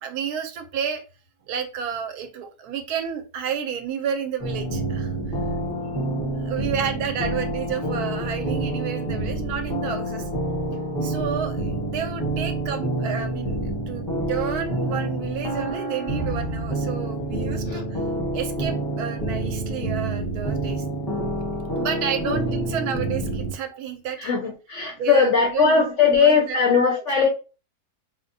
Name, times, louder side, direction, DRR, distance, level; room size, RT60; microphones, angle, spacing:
voice 1, 0.0-1.0 1.5-5.4 6.4-10.3 11.0-13.6 13.9-18.0 18.3-20.8 21.8-24.3 25.0-26.9 27.2-27.3, right 8 dB, 75° right, 1.1 m, -31 dB
sound 1, 4.4-23.5, right 1 dB, ahead, 0.7 m, -28 dB
voice 2, 24.2-27.3, left 5 dB, 65° left, 0.7 m, -19 dB
4.5 x 2.1 x 2.6 m
omnidirectional pair, 1.7 m